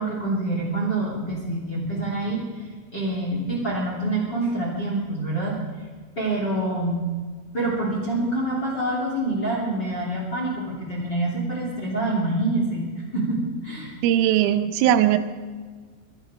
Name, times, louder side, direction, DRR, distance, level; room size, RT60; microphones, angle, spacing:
voice 1, 0.0-5.6 6.2-7.0 7.5-14.0, right 2 dB, 30° left, -3 dB, 2.4 m, -26 dB
voice 2, 14.0-15.2, right 11 dB, 85° right, 8 dB, 3.3 m, -19 dB
23.5 x 10.5 x 4.9 m, 1.5 s
omnidirectional pair, 5.8 m